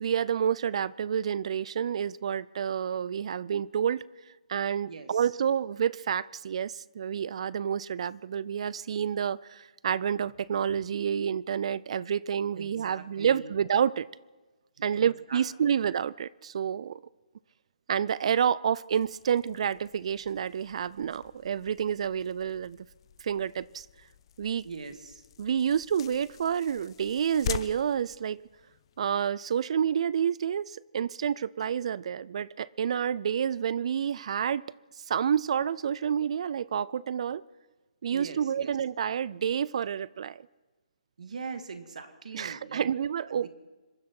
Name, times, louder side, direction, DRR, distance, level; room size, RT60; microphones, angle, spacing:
voice 1, 0.0-4.0 4.5-14.1 14.8-17.0 17.9-22.8 23.2-23.9 24.4-24.6 25.4-28.4 29.0-34.6 35.1-37.4 38.0-40.4 42.3-43.5, right 8 dB, 50° right, 21 dB, 0.4 m, -29 dB
voice 2, 4.9-5.2 12.6-13.5 14.9-15.8 24.6-25.2 38.1-38.7 41.2-42.9 43.2-43.5, right 5 dB, 70° right, 9 dB, 1.9 m, -42 dB
sound 1, 18.9-29.0, left 10 dB, 40° left, 0.6 m, -44 dB
26.5 x 11.0 x 4.5 m, 1.2 s
hypercardioid pair, 150°, 4 cm